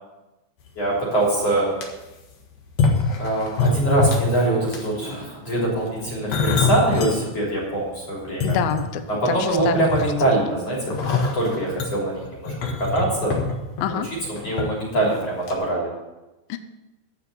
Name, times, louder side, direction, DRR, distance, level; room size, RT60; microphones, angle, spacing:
voice 1, 0.8-1.7 3.2-8.6 9.1-13.4 13.9-14.0 14.3-15.9, right 2 dB, 35° left, -4 dB, 4.0 m, -23 dB
sound 1, 0.9-1.0 1.5-1.9 2.7-4.4 4.7-5.0 5.8-7.2 7.7-7.8 8.2-9.2 9.6-10.4 10.9-14.7 15.0-15.2 15.5-15.6, left 4 dB, 55° left, 2.0 m, -24 dB
voice 2, 8.4-10.1 13.8-14.1 16.5-16.6, left 9 dB, 80° left, 9 dB, 2.2 m, -27 dB
13.5 x 6.0 x 8.5 m, 1.1 s
omnidirectional pair, 5.2 m